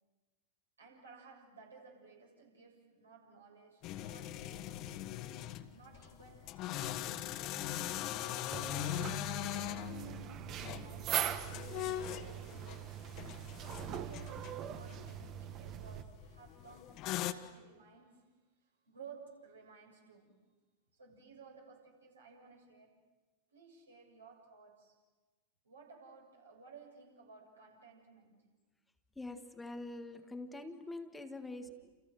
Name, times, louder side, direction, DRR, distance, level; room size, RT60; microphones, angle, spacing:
voice 1, 0.8-5.1 5.7-8.2 9.5-13.0 13.6-18.3 18.6-20.4 20.9-23.0 23.5-25.0 25.6-28.6 31.6-31.7, right 5 dB, 80° right, 7.4 m, -57 dB
sound 1, 3.8-17.3, left 12 dB, 40° left, 1.5 m, -41 dB
sound 2, 8.5-16.0, right 10 dB, 35° right, 1.5 m, -41 dB
voice 2, 29.1-31.7, left 2 dB, 10° left, 1.7 m, -44 dB
29.5 x 29.0 x 6.4 m
figure-of-eight pair, 95°, 0 cm